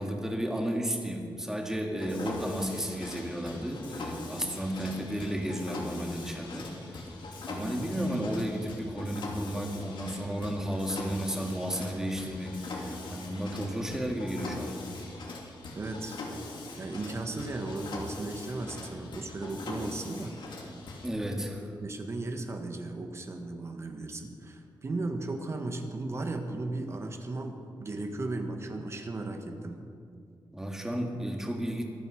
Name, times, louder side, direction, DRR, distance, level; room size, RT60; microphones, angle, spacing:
voice 1, 0.0-7.1 7.5-14.9 21.0-21.7 30.5-31.8, equal, 5° right, 2 dB, 1.8 m, -33 dB
Mechanisms, 2.0-21.1, left 2 dB, 75° left, 2.7 m, -41 dB
voice 2, 15.7-16.2 16.8-20.4 21.8-29.8, right 2 dB, 35° right, 5 dB, 1.4 m, -36 dB
23.5 x 9.2 x 6.3 m, 2.3 s
wide cardioid pair, 165°, 8 cm